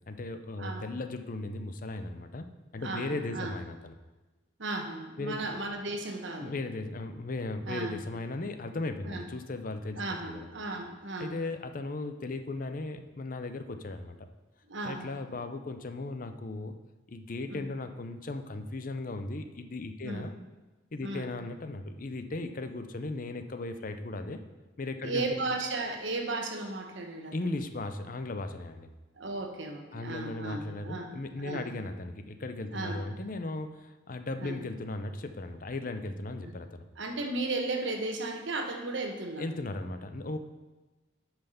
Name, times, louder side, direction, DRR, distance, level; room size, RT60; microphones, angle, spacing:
voice 1, 0.1-3.9 5.2-5.4 6.4-10.0 10.3-10.5 11.2-14.2 14.8-16.8 17.1-20.3 20.9-24.4 24.8-25.4 27.3-28.9 29.9-36.8 39.4-40.4, left 2 dB, 45° left, 8 dB, 0.6 m, -37 dB
voice 2, 2.8-3.6 4.6-6.5 7.7-8.0 9.0-9.2 10.0-11.4 14.7-15.1 17.5-17.7 20.0-20.3 21.0-21.3 25.0-27.6 29.2-31.7 32.7-33.0 34.4-34.6 36.4-36.5 37.0-39.5, right 2 dB, 70° right, 4 dB, 1.2 m, -35 dB
8.8 x 5.7 x 5.6 m, 1.2 s
head